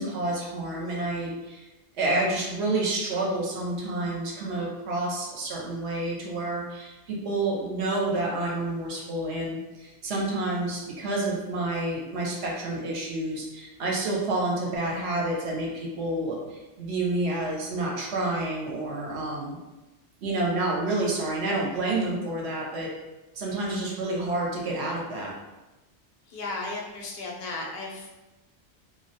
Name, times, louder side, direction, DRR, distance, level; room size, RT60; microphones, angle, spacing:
voice 1, 0.0-1.7 2.0-19.6 20.2-22.9 23.3-25.3, right 2 dB, 70° right, -3 dB, 0.8 m, -29 dB
voice 2, 26.3-28.1, left 2 dB, 60° left, -1 dB, 0.6 m, -35 dB
2.2 x 2.1 x 2.7 m, 1.1 s
omnidirectional pair, 1.2 m